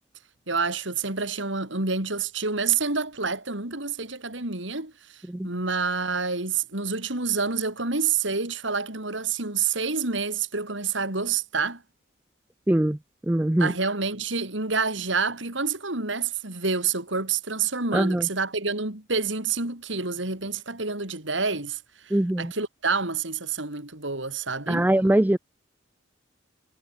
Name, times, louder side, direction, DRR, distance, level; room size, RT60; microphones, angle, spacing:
voice 1, 0.5-11.8 13.6-24.9, right 5 dB, 75° right, 4.1 m, -28 dB
voice 2, 12.7-13.0 13.3-13.7 17.9-18.3 22.1-22.5 24.7-25.4, right 1 dB, 10° right, 0.3 m, -22 dB
head